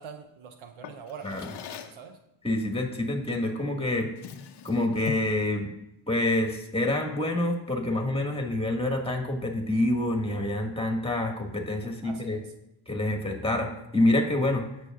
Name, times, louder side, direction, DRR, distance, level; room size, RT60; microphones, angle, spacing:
voice 1, 0.0-2.2 12.0-12.4, right 6 dB, 70° right, 6 dB, 0.9 m, -44 dB
Drawer open or close, 0.8-2.1 3.3-3.5 3.9-5.4, left 7 dB, 55° left, 0.8 m, -41 dB
voice 2, 2.4-4.1 4.6-5.7 6.1-12.4 12.9-14.7, left 1 dB, 10° left, 2 dB, 1.8 m, -27 dB
17.0 x 6.4 x 2.5 m, 0.84 s
cardioid pair, 75°, 49 cm